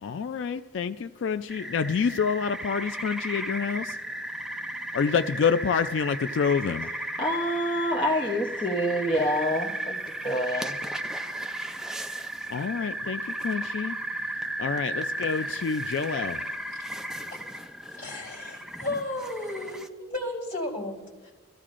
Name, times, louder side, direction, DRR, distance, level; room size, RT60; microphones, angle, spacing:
voice 1, 0.0-4.0 4.9-6.9 12.5-14.0 14.6-16.4, left 6 dB, 85° left, 9 dB, 0.4 m, -27 dB
sound 1, 1.5-19.9, right 1 dB, 5° right, 0.4 m, -35 dB
voice 2, 7.2-10.8, equal, 25° left, -3 dB, 0.8 m, -27 dB
voice 3, 17.9-21.3, left 2 dB, 45° left, -3 dB, 3.6 m, -34 dB
25.0 x 14.5 x 2.5 m, 1.3 s
head